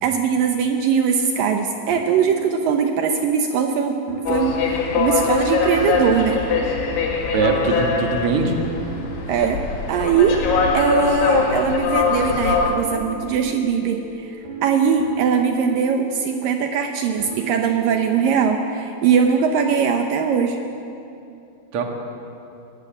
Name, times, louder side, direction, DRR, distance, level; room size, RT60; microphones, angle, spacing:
voice 1, 0.0-6.4 9.3-9.6 9.9-10.4 10.7-14.4 14.6-20.6, right 6 dB, 90° right, 4 dB, 1.9 m, -21 dB
sound 1, 1.9-19.3, right 4 dB, 65° right, 4.0 m, -36 dB
sound 2, 4.3-12.7, left 4 dB, 80° left, 4.4 m, -22 dB
voice 2, 7.3-8.7 21.7-21.8, right 4 dB, 50° right, 3 dB, 1.7 m, -21 dB
19.5 x 17.0 x 8.7 m, 2.6 s
omnidirectional pair, 5.3 m